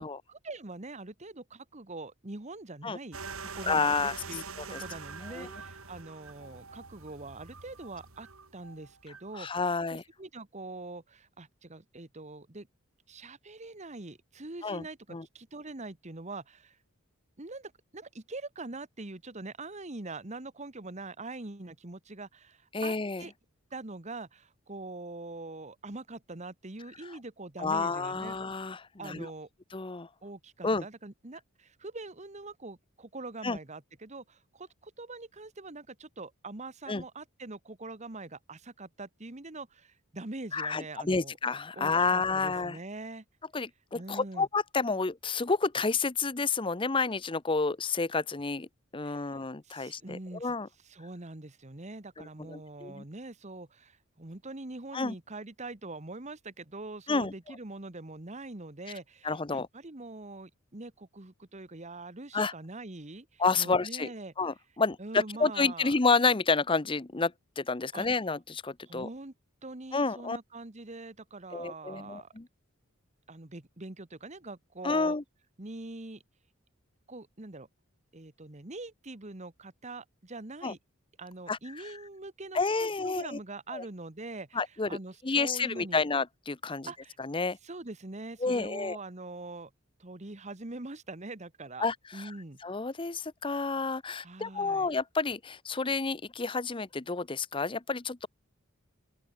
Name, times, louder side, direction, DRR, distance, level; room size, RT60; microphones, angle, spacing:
voice 1, 0.0-3.9 4.3-8.3 8.5-9.5 9.9-12.7 13.1-16.8 17.4-22.9 23.2-23.3 23.7-28.4 29.0-29.5 30.2-41.3 41.7-43.2 43.9-44.5 49.0-50.5 50.8-64.3 65.0-65.9 67.9-68.1 68.9-69.3 69.6-72.3 73.3-75.2 75.6-76.2 77.1-77.7 78.1-80.8 81.2-84.6 84.9-86.0 86.9-87.2 87.6-89.7 90.0-91.9 92.1-92.6 94.2-94.9, right 2 dB, 35° right, 1.5 m, -43 dB
sound 1, 3.1-9.3, right 5 dB, 80° right, 4.1 m, -44 dB
voice 2, 3.6-4.2 4.7-4.8 5.2-5.5 9.3-10.0 14.6-14.8 15.1-15.3 22.7-23.2 27.6-29.3 29.7-30.1 30.6-30.9 33.4-33.6 36.9-37.0 40.5-42.8 43.5-48.7 48.9-50.7 52.2-53.0 54.9-55.1 57.1-57.3 59.2-59.7 62.3-62.5 63.4-64.1 64.4-69.1 69.9-70.4 71.5-72.5 74.8-75.2 80.6-80.7 81.5-81.6 81.8-81.9 82.5-83.4 83.7-83.8 84.5-84.9 85.2-86.9 87.2-87.6 88.4-89.0 91.8-92.3 92.6-98.3, left 4 dB, 25° left, 0.7 m, -30 dB
open air
head